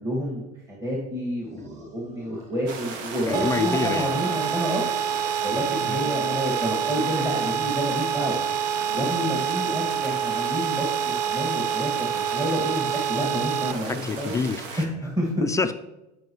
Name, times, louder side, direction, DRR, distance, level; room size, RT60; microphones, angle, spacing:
voice 1, 0.0-4.8 5.4-8.4 8.9-14.4 14.8-15.4, equal, 15° right, -5 dB, 2.0 m, -29 dB
sound 1, 1.4-3.5 3.8-5.2 5.5-7.2 7.5-10.7, right 3 dB, 35° right, 2.0 m, -47 dB
sound 2, 2.7-14.9, right 5 dB, 70° right, 1.3 m, -37 dB
voice 2, 3.3-4.2 5.9-6.0 13.9-14.8 15.4-15.7, left 4 dB, 15° left, 8 dB, 0.4 m, -27 dB
sound 3, 3.3-13.7, right 8 dB, 85° right, 0.5 m, -27 dB
14.5 x 5.5 x 3.1 m, 0.97 s
supercardioid pair, 115°, 21 cm